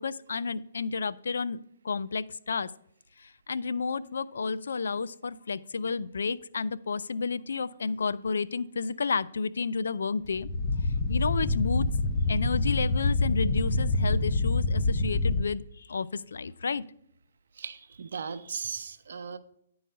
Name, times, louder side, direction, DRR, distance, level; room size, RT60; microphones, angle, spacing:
voice 1, 0.0-1.6 1.8-2.7 3.2-10.5 11.1-11.9 12.3-16.8, left 4 dB, 75° left, 17 dB, 0.3 m, -31 dB
sound 1, 10.2-15.4, left 2 dB, 30° left, 0.8 m, -26 dB
voice 2, 17.6-19.4, right 6 dB, 70° right, 10 dB, 0.6 m, -37 dB
10.0 x 3.9 x 5.5 m, 0.69 s
hypercardioid pair, 135°, 0 cm